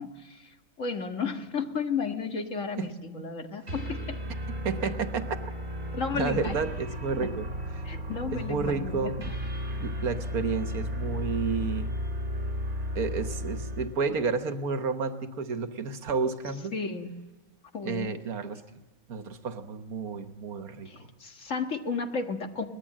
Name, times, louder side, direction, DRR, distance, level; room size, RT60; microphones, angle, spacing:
voice 1, 0.0-4.2 6.0-6.6 7.2-7.3 7.8-9.3 16.7-17.1 17.7-18.2 20.9-22.7, left 5 dB, 60° left, 5 dB, 2.0 m, -33 dB
sound 1, 3.7-14.0, equal, 40° right, 4.5 m, -34 dB
voice 2, 4.5-5.4 5.9-7.5 7.8-7.9 8.3-9.2 9.8-11.9 13.0-16.7 17.8-18.6 19.1-21.1, right 5 dB, 80° right, 9 dB, 1.7 m, -31 dB
22.5 x 19.5 x 7.5 m, 1.2 s
omnidirectional pair, 1.5 m